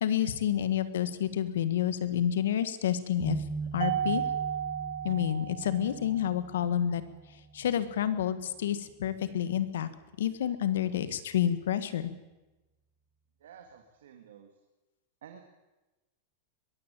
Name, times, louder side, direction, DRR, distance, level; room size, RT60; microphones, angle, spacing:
voice 1, 0.0-3.4 3.7-4.2 5.0-7.0 7.5-9.9 10.2-12.0, left 10 dB, 85° left, 13 dB, 1.9 m, -29 dB
sound 1, 3.2-9.0, right 3 dB, 5° right, 0.8 m, -41 dB
Mallet percussion, 3.8-6.2, right 9 dB, 55° right, 0.9 m, -33 dB
voice 2, 13.4-14.5 15.2-15.4, right 8 dB, 85° right, 4 dB, 2.5 m, -51 dB
22.0 x 15.0 x 8.6 m, 1.1 s
supercardioid pair, 180°, 0 cm